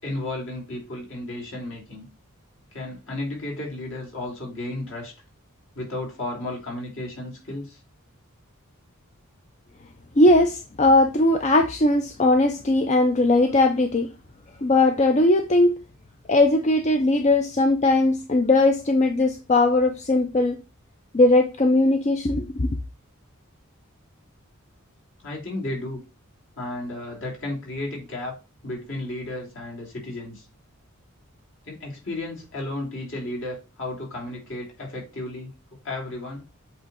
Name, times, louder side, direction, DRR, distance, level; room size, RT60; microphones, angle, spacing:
voice 1, 0.0-2.1 2.7-5.1 5.7-7.8 25.2-26.0 26.6-28.4 28.6-30.4 31.6-35.5 35.8-36.4, left 2 dB, 60° left, 3.0 m, -33 dB
voice 2, 10.2-14.1 14.6-15.7 16.3-20.6 21.1-22.8, left 2 dB, 30° left, 0.5 m, -19 dB
7.8 x 3.5 x 4.1 m
head